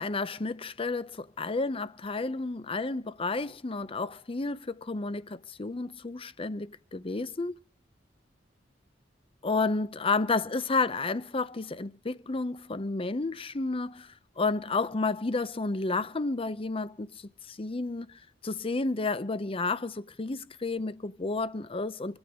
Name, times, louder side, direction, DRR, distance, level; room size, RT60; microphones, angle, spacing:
voice 1, 0.0-7.5 9.4-22.2, left 3 dB, 30° left, 0.7 m, -31 dB
26.0 x 8.8 x 5.0 m
head